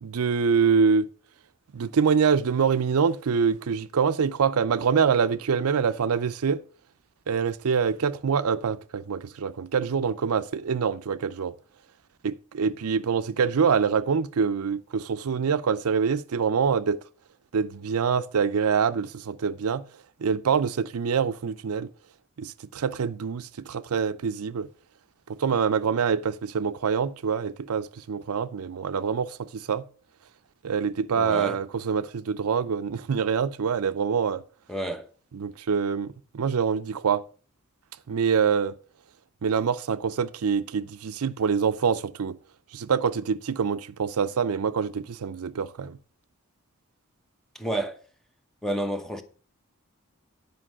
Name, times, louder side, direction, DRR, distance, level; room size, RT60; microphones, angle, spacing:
voice 1, 0.0-1.1 1.7-6.6 7.3-11.5 12.2-17.0 17.5-19.8 20.2-21.9 22.4-24.7 25.4-29.8 30.6-34.4 35.3-37.2 38.1-38.7 39.4-42.4 42.7-46.0, right 6 dB, 90° right, 0.5 m, -25 dB
voice 2, 31.2-31.6 34.7-35.1 47.5-48.0 48.6-49.2, right 1 dB, ahead, 0.9 m, -30 dB
10.0 x 5.3 x 6.1 m
head